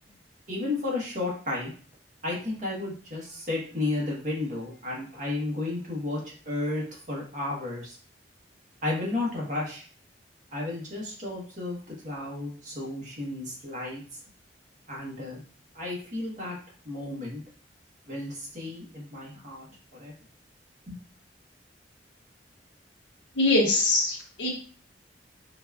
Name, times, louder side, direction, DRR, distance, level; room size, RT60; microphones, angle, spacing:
voice 1, 0.5-1.7 2.2-8.0 8.8-9.9 10.5-11.8 12.0-14.0 14.9-15.4 15.7-16.6 16.8-17.4 18.1-19.6 19.9-20.1 20.9-21.0, left 2 dB, 45° right, -3 dB, 1.1 m, -33 dB
voice 2, 23.4-24.5, left 2 dB, 85° left, -1 dB, 0.7 m, -23 dB
3.9 x 2.3 x 2.3 m, 0.41 s
head